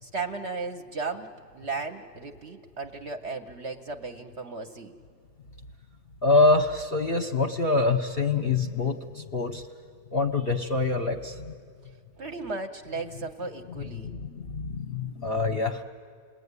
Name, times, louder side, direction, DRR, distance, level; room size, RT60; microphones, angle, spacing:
voice 1, 0.0-4.9 12.2-14.1, right 4 dB, 50° right, 6 dB, 0.9 m, -35 dB
voice 2, 6.2-9.7 10.1-11.5 13.8-15.8, left 3 dB, 45° left, 6 dB, 0.8 m, -25 dB
29.0 x 20.5 x 9.6 m, 2.1 s
omnidirectional pair, 1.9 m